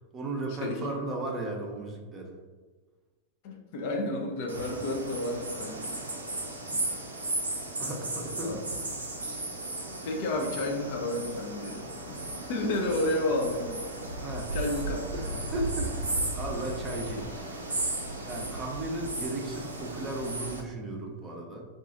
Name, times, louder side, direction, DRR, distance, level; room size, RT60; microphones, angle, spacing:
voice 1, 0.1-2.3 7.8-8.6 14.2-14.5 15.1-17.3 18.2-21.7, right 2 dB, 20° right, -1 dB, 0.6 m, -35 dB
voice 2, 3.4-6.1 6.7-6.9 8.4-8.5 10.0-11.8 12.1-12.2 12.5-13.8 14.1-14.2 14.5-15.3, left 1 dB, 50° left, 1 dB, 0.5 m, -31 dB
sound 1, 4.5-20.6, right 2 dB, 80° right, 0.5 m, -35 dB
2.5 x 2.3 x 3.8 m, 1.4 s
figure-of-eight pair, 90°, 0 cm